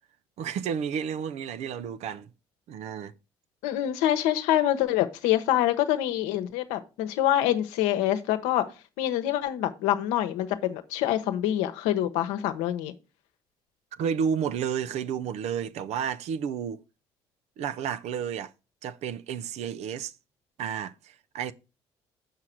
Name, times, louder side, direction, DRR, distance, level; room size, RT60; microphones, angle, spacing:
voice 1, 0.4-2.3 2.7-3.1 14.0-16.8 17.6-18.5 18.8-20.1 20.6-21.5, right 7 dB, 70° right, 0.6 m, -31 dB
voice 2, 3.6-8.6 9.0-12.9, left 12 dB, 85° left, 0.9 m, -26 dB
7.3 x 4.9 x 5.9 m
supercardioid pair, 65°, 12 cm